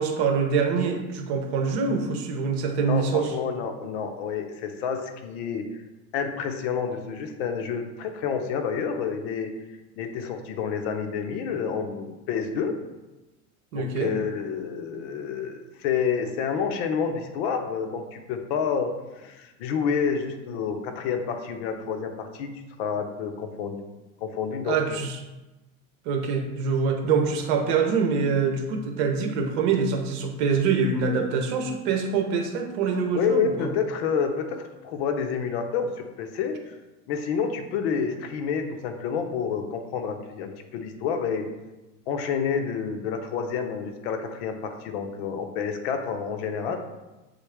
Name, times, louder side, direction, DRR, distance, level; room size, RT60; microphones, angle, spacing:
voice 1, 0.0-3.3 13.7-14.1 24.6-25.2 26.0-33.7, right 5 dB, 50° right, 4 dB, 0.9 m, -25 dB
voice 2, 2.9-5.7 6.1-9.5 10.0-12.8 13.8-23.8 24.2-25.0 33.1-36.7 37.1-41.5 42.1-46.8, left 6 dB, 55° left, 6 dB, 0.6 m, -29 dB
7.2 x 3.8 x 3.4 m, 1.1 s
supercardioid pair, 180°, 40 cm